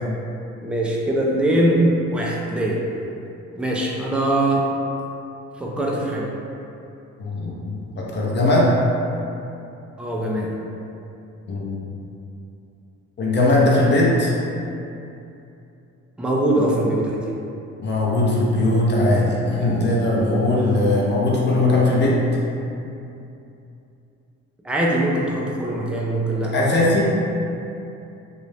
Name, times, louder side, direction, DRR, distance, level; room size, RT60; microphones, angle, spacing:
voice 1, 0.6-2.8 3.6-4.7 5.6-6.3 10.0-10.5 16.2-17.2 24.6-26.5, right 1 dB, 5° right, -3 dB, 0.3 m, -22 dB
voice 2, 7.2-8.7 11.5-11.8 13.2-14.3 17.8-22.2 22.8-22.9 26.5-27.1, left 2 dB, 35° left, -5 dB, 0.6 m, -19 dB
2.5 x 2.1 x 3.2 m, 2.7 s
cardioid pair, 90°, 30 cm